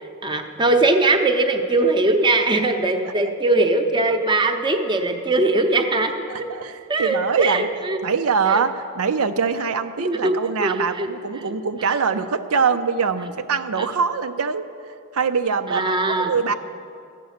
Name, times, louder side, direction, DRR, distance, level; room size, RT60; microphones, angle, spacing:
voice 1, 0.2-6.1 6.9-8.0 8.4-8.6 10.0-10.4 10.6-11.1 13.8-13.9 15.7-16.3, right 2 dB, 20° right, 5 dB, 0.7 m, -20 dB
voice 2, 6.3-7.7 8.0-14.6 15.1-16.5, right 5 dB, 85° right, 9 dB, 0.5 m, -23 dB
13.0 x 9.1 x 6.4 m, 2.5 s
head